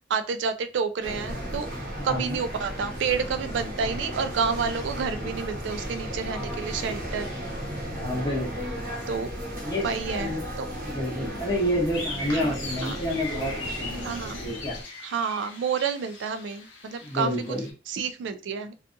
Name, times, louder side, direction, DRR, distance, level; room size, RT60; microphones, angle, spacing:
voice 1, 0.1-1.7 2.0-7.3 9.1-9.3 9.8-10.3 10.6-10.7 12.3-12.5 12.8-12.9 14.0-14.4 15.0-17.3 17.9-18.7, right 6 dB, 65° right, 10 dB, 0.3 m, -29 dB
sound 1, 1.0-14.8, equal, 45° right, 0.9 m, -35 dB
voice 2, 2.0-2.4 7.9-8.8 9.6-10.4 10.8-14.8 17.0-17.7, equal, 20° left, -4 dB, 0.8 m, -29 dB
sound 2, 11.9-17.7, left 3 dB, 75° left, 0.7 m, -39 dB
2.6 x 2.3 x 2.5 m, 0.34 s
head